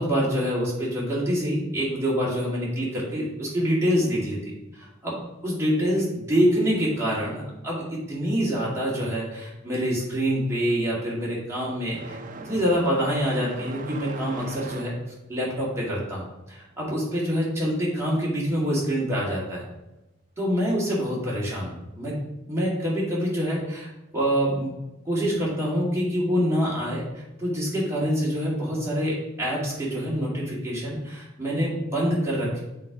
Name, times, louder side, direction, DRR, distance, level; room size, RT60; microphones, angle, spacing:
voice 1, 0.0-5.2 5.4-12.2 12.4-14.9 15.3-19.7 20.4-22.2 22.5-24.7 25.1-27.0 27.4-32.6, equal, 15° right, -6 dB, 2.2 m, -26 dB
sound 1, 9.6-9.7 9.9-18.3 18.5-19.6 20.6-20.7 21.5-21.6 23.3-23.5, right 3 dB, 40° right, 0.5 m, -42 dB
7.5 x 3.4 x 5.0 m, 0.98 s
head